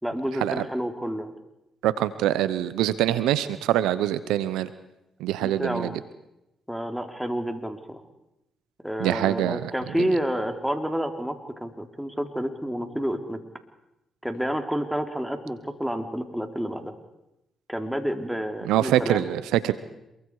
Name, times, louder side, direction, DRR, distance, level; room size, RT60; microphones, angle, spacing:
voice 1, 0.0-1.3 5.4-5.9 6.7-8.0 8.8-13.4 14.2-16.9 17.7-19.2, equal, 5° right, 5 dB, 3.6 m, -29 dB
voice 2, 1.8-4.7 5.2-6.0 9.0-9.7 18.7-19.7, right 13 dB, 85° right, 14 dB, 0.9 m, -24 dB
27.5 x 23.0 x 4.9 m, 0.90 s
hypercardioid pair, 50°, 0 cm